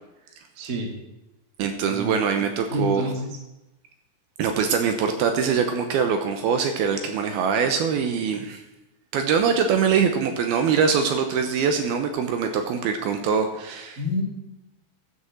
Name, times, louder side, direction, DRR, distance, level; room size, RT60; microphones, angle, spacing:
voice 1, 0.6-0.9 1.8-2.1 2.7-3.4 14.0-14.2, left 1 dB, 35° right, 1 dB, 1.7 m, -28 dB
voice 2, 1.6-3.0 4.4-8.6 9.1-14.2, right 6 dB, 75° right, 6 dB, 2.6 m, -23 dB
12.5 x 6.8 x 7.7 m, 0.95 s
omnidirectional pair, 4.8 m